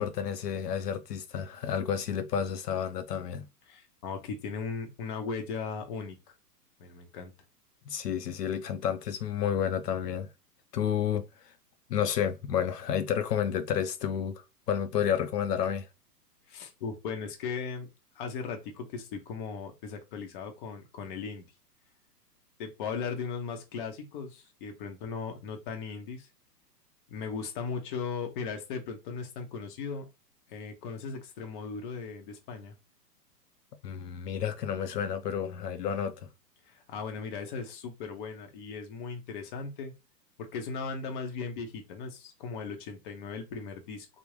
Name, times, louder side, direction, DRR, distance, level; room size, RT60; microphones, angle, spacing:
voice 1, 0.0-3.5 7.9-10.3 10.7-11.5 11.9-15.9 33.8-36.3, left 8 dB, 75° left, 0.5 m, -31 dB
voice 2, 3.7-6.2 6.8-7.3 16.5-17.9 18.1-21.4 22.6-26.3 27.1-30.0 30.5-32.7 36.6-39.9 40.4-44.1, left 5 dB, 30° left, 0.7 m, -37 dB
3.4 x 2.1 x 3.1 m
figure-of-eight pair, 115°, 49 cm